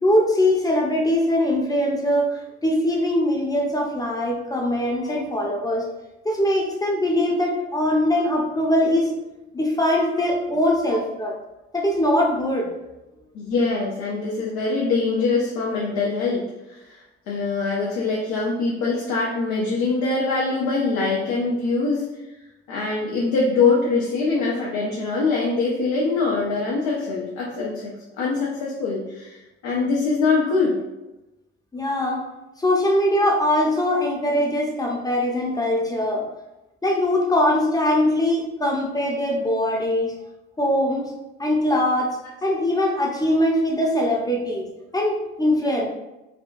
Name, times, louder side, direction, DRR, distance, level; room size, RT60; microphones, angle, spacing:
voice 1, 0.0-5.8 6.2-11.3 11.7-12.7 31.7-32.3 32.6-36.3 36.8-40.1 40.6-41.1 41.4-44.7 44.9-45.9, left 1 dB, 10° left, 0 dB, 0.7 m, -22 dB
voice 2, 13.3-17.0 17.3-22.1 22.7-30.8, left 4 dB, 65° left, -4 dB, 0.7 m, -23 dB
3.6 x 2.2 x 2.5 m, 0.99 s
hypercardioid pair, 55°, 33 cm